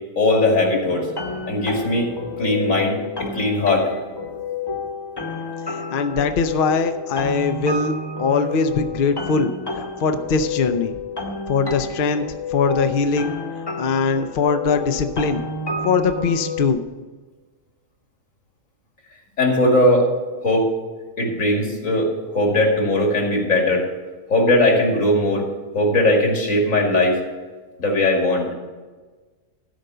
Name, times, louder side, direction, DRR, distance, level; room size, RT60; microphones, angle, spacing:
voice 1, 0.2-1.1 1.5-2.1 2.4-3.9 19.4-20.1 20.4-20.7 21.2-23.8 24.3-25.4 25.7-27.2 27.8-28.4, left 1 dB, 85° left, 1 dB, 2.6 m, -19 dB
sound 1, 0.8-16.7, left 3 dB, 20° left, 1.0 m, -30 dB
voice 2, 5.7-9.5 9.8-10.9 11.5-12.2 12.5-13.3 13.8-15.5 15.8-16.8, left 5 dB, 50° left, 7 dB, 0.7 m, -21 dB
13.0 x 5.1 x 6.7 m, 1.3 s
omnidirectional pair, 1.3 m